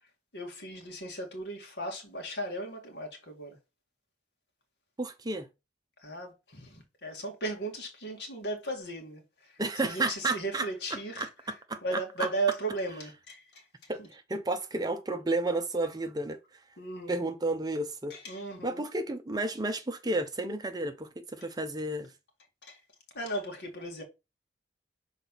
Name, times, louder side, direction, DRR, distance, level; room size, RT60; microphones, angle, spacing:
voice 1, 0.3-3.6 6.0-11.3 11.8-14.1 16.8-17.2 18.1-18.9 22.6-22.8 23.1-24.0, right 2 dB, 70° left, 2.1 m, -36 dB
voice 2, 5.0-5.5 9.6-10.7 11.2-12.3 13.9-16.6 17.1-18.1 18.6-22.1, right 2 dB, 20° right, 0.6 m, -32 dB
6.1 x 4.0 x 4.1 m
head